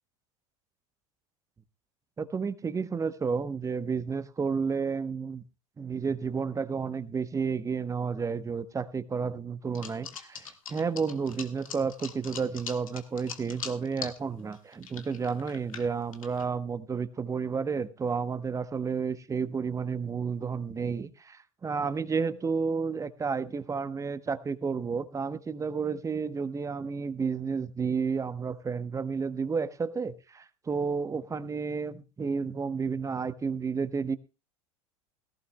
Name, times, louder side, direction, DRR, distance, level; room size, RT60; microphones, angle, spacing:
voice 1, 2.2-5.4 5.8-34.2, right 5 dB, 20° right, 14 dB, 1.0 m, -31 dB
sound 1, 9.7-14.2 14.5-16.5, left 7 dB, 75° left, 1.7 m, -41 dB
18.0 x 16.0 x 2.2 m, 0.29 s
figure-of-eight pair, 80°, 17 cm